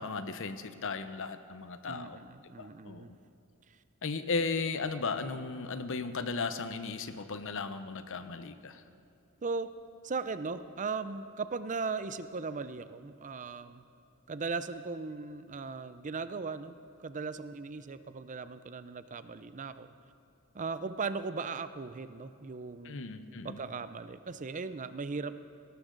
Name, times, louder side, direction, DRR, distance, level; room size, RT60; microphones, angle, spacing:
voice 1, 0.0-2.2 2.6-3.2 4.0-8.8 22.8-23.6, left 4 dB, 60° left, 10 dB, 0.8 m, -36 dB
voice 2, 1.9-3.2 3.7-3.8 9.4-9.7 10.0-13.8 14.3-19.9 20.5-23.0 23.4-25.4, right 4 dB, 35° right, 12 dB, 0.5 m, -38 dB
19.5 x 18.0 x 3.9 m, 2.7 s
head